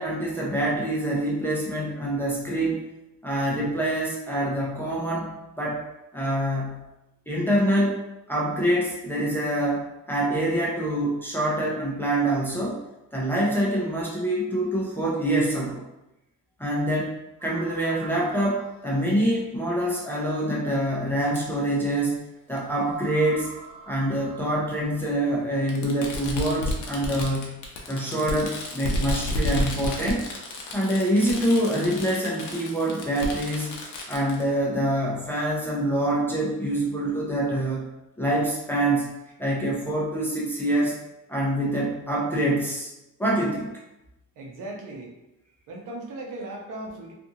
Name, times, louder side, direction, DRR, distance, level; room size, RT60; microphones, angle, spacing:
voice 1, 0.0-2.8 3.2-5.9 6.1-6.9 7.3-8.0 8.3-12.8 13.1-15.8 16.6-23.5 23.9-27.6 27.9-30.2 30.7-33.7 34.1-37.9 38.2-41.0 41.3-42.9 43.2-43.7, right 1 dB, 5° left, -6 dB, 0.4 m, -25 dB
sound 1, 17.4-19.4 20.1-20.2 20.8-20.9 22.8-25.2, right 3 dB, 50° right, 0.9 m, -45 dB
Fireworks, 21.4-21.5 22.6-22.7 23.9-24.0 25.7-34.4, left 1 dB, 70° left, 0.7 m, -31 dB
voice 2, 44.4-45.1 45.7-47.1, right 2 dB, 75° right, 0 dB, 0.7 m, -37 dB
2.6 x 2.4 x 2.7 m, 0.93 s
cardioid pair, 155°, 31 cm